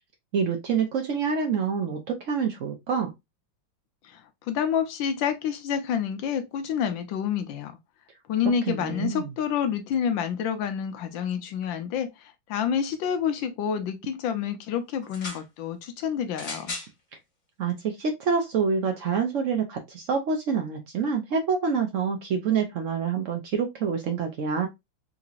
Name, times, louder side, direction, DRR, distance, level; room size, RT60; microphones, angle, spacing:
voice 1, 0.3-3.1 8.7-9.3 17.6-24.7, right 6 dB, 85° right, 0.6 m, -27 dB
voice 2, 4.0-7.7 8.3-16.8, left 8 dB, 80° left, 1.4 m, -28 dB
sound 1, 15.0-15.5 16.3-16.9 17.8-17.9, left 3 dB, 40° left, 1.7 m, -36 dB
3.8 x 3.0 x 2.4 m
omnidirectional pair, 2.1 m